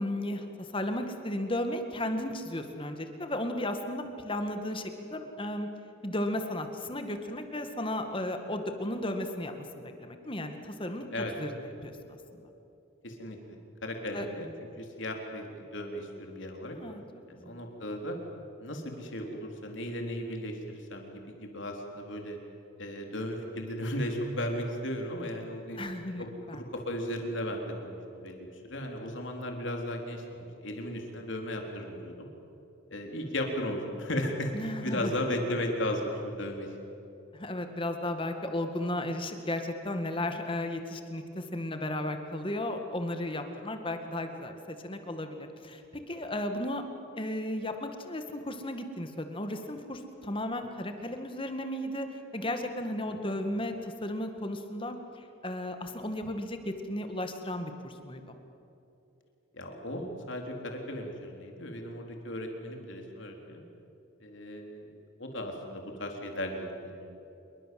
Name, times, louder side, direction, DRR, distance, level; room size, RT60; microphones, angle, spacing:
voice 1, 0.0-5.7 6.0-11.5 11.8-12.4 14.1-14.3 16.7-17.0 17.4-17.7 25.8-26.6 34.5-35.1 37.3-46.8 47.2-58.4, left 1 dB, 25° left, 6 dB, 2.0 m, -35 dB
voice 2, 13.0-13.4 13.8-16.8 17.3-18.2 18.6-22.4 22.8-25.8 26.2-32.3 32.9-36.7 53.0-53.2 59.5-63.6 64.2-64.8 65.2-67.1, left 1 dB, 65° left, 2 dB, 3.7 m, -36 dB
27.0 x 23.0 x 7.8 m, 2.9 s
head